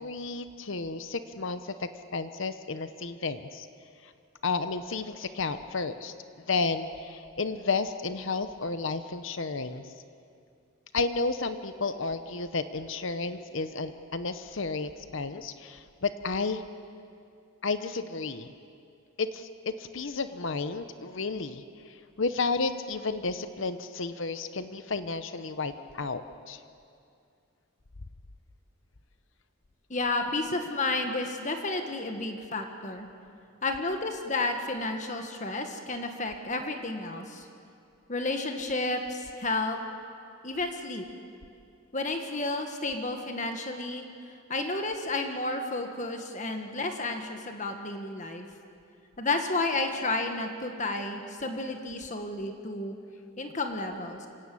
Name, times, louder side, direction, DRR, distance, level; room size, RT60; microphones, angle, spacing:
voice 1, 0.0-3.7 4.4-6.1 6.5-9.8 10.9-16.6 17.6-18.5 19.2-21.6 22.2-26.6, left 4 dB, 60° left, 10 dB, 0.9 m, -32 dB
voice 2, 29.9-33.1 33.6-37.5 38.1-39.8 40.4-41.1 41.9-44.0 44.5-48.4 49.2-53.0 53.4-54.3, left 2 dB, 35° left, 5 dB, 1.6 m, -31 dB
26.5 x 17.5 x 8.5 m, 2.4 s
head